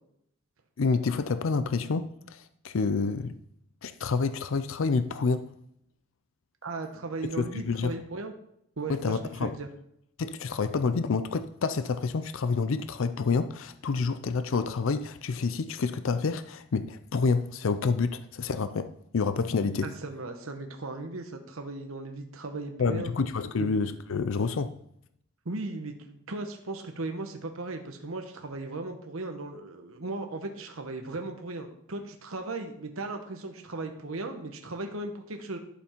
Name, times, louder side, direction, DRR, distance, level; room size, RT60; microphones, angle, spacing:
voice 1, 0.8-3.4 3.8-5.5 7.4-8.0 8.9-9.6 10.2-19.9 22.8-24.7, left 4 dB, 65° left, 0.5 m, -28 dB
voice 2, 6.6-8.3 8.8-9.7 19.8-23.1 23.6-23.8 25.4-35.6, right 2 dB, 75° right, 1.0 m, -37 dB
11.5 x 7.0 x 4.5 m
head